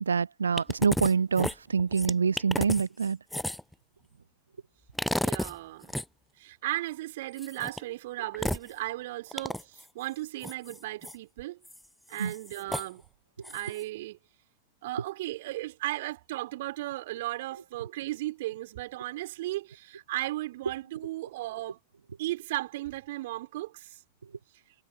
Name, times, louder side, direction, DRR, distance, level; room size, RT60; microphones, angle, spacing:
voice 1, 0.0-3.2 12.2-12.3, right 6 dB, 75° right, 0.3 m, -26 dB
sound 1, 0.6-1.1 1.4-3.7 5.0-5.5 5.8-6.0 7.4-7.8 8.3-8.7 9.3-9.8 10.4-11.1 11.6-11.8 12.1-12.9 13.4-13.8, left 1 dB, 5° left, 0.4 m, -32 dB
voice 2, 5.1-6.0 6.4-11.6 12.1-13.0 13.5-14.2 14.8-21.8 22.2-24.0, right 17 dB, 55° right, 3.4 m, -36 dB
figure-of-eight pair, 90°, 0 cm